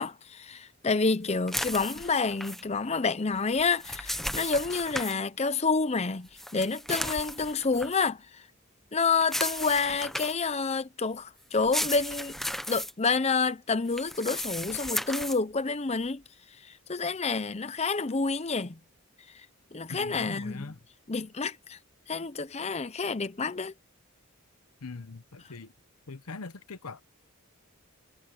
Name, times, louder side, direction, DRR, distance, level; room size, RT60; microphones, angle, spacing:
voice 1, 0.0-8.4 8.9-12.4 12.7-16.2 16.6-18.8 19.3-19.5 19.7-20.7 21.1-21.8 22.1-23.7, left 4 dB, 30° left, 0.7 m, -29 dB
sound 1, 1.5-2.6 3.6-5.2 6.4-7.9 9.2-10.5 11.5-12.9 13.9-15.4, left 1 dB, ahead, 0.9 m, -35 dB
voice 2, 19.9-20.8 24.8-25.7 26.1-27.0, left 3 dB, 90° left, 0.9 m, -41 dB
head